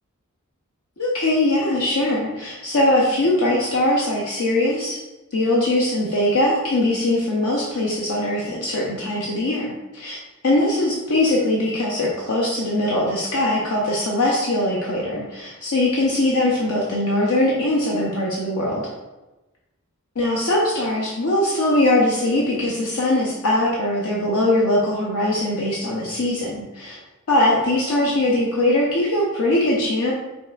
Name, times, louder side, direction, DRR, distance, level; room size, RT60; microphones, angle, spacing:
voice 1, 1.0-5.0 5.3-10.2 10.4-18.9 20.2-27.0 27.3-30.1, left 1 dB, 80° left, -4 dB, 0.7 m, -21 dB
5.3 x 3.5 x 2.4 m, 1.0 s
head